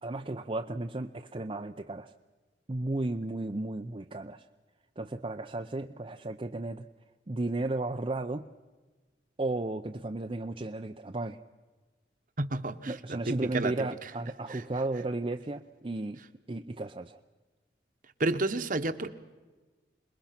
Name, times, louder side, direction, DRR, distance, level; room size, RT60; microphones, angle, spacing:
voice 1, 0.0-2.1 2.7-4.5 5.0-6.8 7.3-8.5 9.4-11.4 12.8-16.2 16.5-17.2, right 2 dB, 30° right, 4 dB, 0.6 m, -34 dB
voice 2, 12.4-13.0 13.3-14.1 14.5-14.6 18.2-19.1, right 2 dB, 50° right, 10 dB, 1.2 m, -31 dB
27.5 x 21.0 x 5.9 m, 1.3 s
head